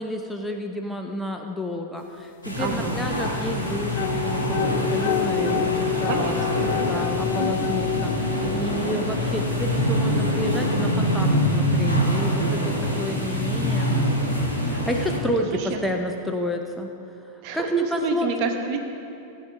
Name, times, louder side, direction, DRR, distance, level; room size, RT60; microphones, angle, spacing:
voice 1, 0.0-6.6 6.9-13.9 14.6-16.9 17.5-18.3, left 1 dB, 5° left, 3 dB, 0.7 m, -30 dB
sound 1, 2.4-15.2, equal, 85° left, 1.8 m, -25 dB
sound 2, 2.6-9.3, left 12 dB, 50° left, 0.3 m, -29 dB
voice 2, 2.6-3.0 5.4-7.3 8.4-8.9 12.4-13.3 15.5-16.0 17.4-18.8, right 4 dB, 45° right, 4 dB, 1.2 m, -30 dB
16.5 x 8.4 x 3.5 m, 2.8 s
figure-of-eight pair, 90°, 0 cm